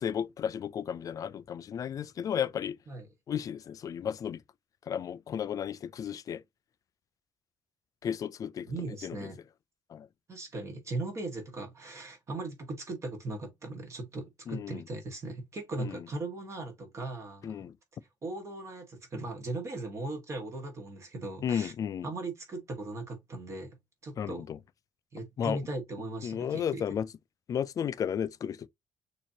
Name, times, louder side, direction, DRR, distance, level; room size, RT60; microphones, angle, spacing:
voice 1, 0.0-2.8 3.3-4.4 4.9-6.4 8.0-8.7 9.0-9.2 9.9-10.1 14.5-14.8 15.8-15.9 17.4-17.7 21.4-22.1 24.2-24.4 25.4-25.6 26.2-27.1 27.5-28.7, left 8 dB, 45° left, 0.4 m, -33 dB
voice 2, 8.7-9.4 10.3-17.6 18.2-21.7 22.0-23.7 24.0-24.4 25.1-26.8, right 2 dB, 35° right, 1.6 m, -38 dB
6.4 x 2.9 x 2.8 m
cardioid pair, 125°, 9 cm